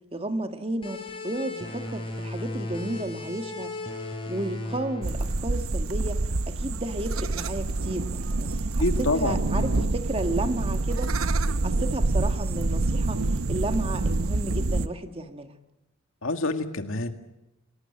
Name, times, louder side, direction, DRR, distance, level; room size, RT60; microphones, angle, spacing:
voice 1, 0.1-3.7 4.3-11.1 11.6-13.2 13.5-15.6, right 1 dB, 30° right, 7 dB, 1.6 m, -33 dB
sound 1, 0.8-6.1, left 2 dB, 25° left, 4.7 m, -36 dB
sound 2, 5.0-14.9, right 2 dB, 90° right, 0.9 m, -26 dB
voice 2, 8.8-9.9 16.2-17.1, left 2 dB, 75° left, 6 dB, 2.0 m, -27 dB
28.5 x 18.5 x 8.5 m, 0.95 s
head